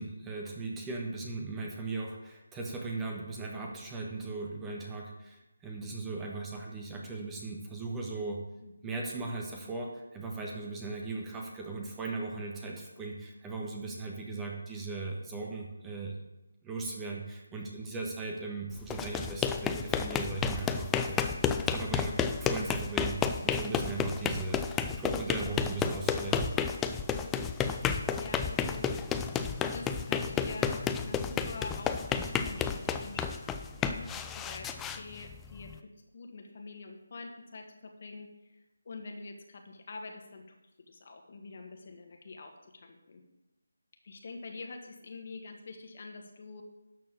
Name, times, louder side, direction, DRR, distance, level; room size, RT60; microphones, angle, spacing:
voice 1, 0.0-8.4 8.8-16.1 16.6-21.3 21.7-26.5, right 3 dB, 10° right, -1 dB, 1.2 m, -38 dB
voice 2, 8.6-8.9 17.5-17.6 26.8-29.2 29.6-40.4 40.9-43.2 44.0-46.6, left 3 dB, 45° left, 3 dB, 1.7 m, -46 dB
sound 1, 18.8-35.8, left 7 dB, 10° left, 0.4 m, -32 dB
12.0 x 4.4 x 7.2 m, 0.98 s
figure-of-eight pair, 155°, 0 cm